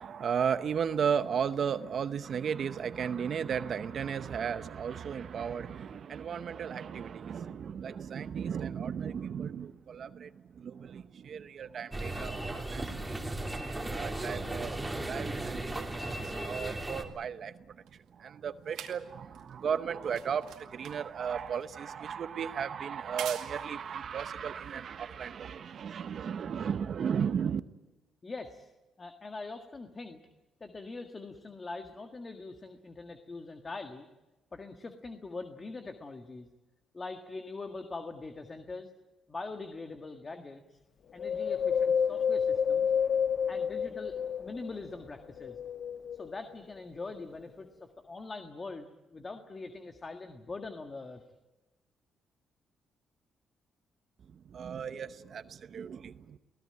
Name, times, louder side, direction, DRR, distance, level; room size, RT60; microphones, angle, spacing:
voice 1, 0.0-13.4 13.9-17.7 18.2-27.6 54.5-56.4, right 7 dB, 55° right, 12 dB, 0.8 m, -35 dB
sound 1, 11.9-17.0, right 1 dB, 10° right, 2.9 m, -36 dB
sound 2, 17.4-25.5 26.3-26.4, right 10 dB, 90° right, 2.2 m, -48 dB
voice 2, 28.2-28.7 29.0-30.2 30.6-34.1 34.5-36.5 36.9-38.9 39.3-40.8 41.1-42.9 43.5-45.6 46.1-51.2, left 3 dB, 30° left, 6 dB, 1.7 m, -43 dB
Wind, 41.2-44.8 45.3-46.5 47.1-47.2, left 7 dB, 55° left, 0.7 m, -29 dB
24.5 x 17.0 x 8.9 m, 1.1 s
cardioid pair, 90°, 0 cm